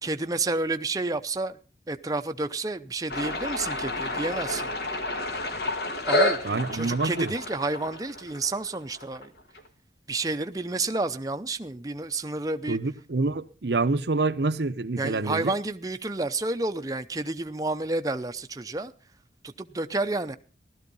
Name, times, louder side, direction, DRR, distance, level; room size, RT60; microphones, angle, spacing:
voice 1, 0.0-1.6 1.9-4.7 6.1-9.3 10.1-12.8 15.0-18.9 19.4-20.4, right 2 dB, 20° right, 0.7 m, -30 dB
sound 1, 3.1-9.6, left 2 dB, 65° left, 1.9 m, -30 dB
voice 2, 6.4-7.3 12.7-15.5, right 3 dB, 75° right, 0.8 m, -27 dB
16.0 x 13.0 x 5.4 m
head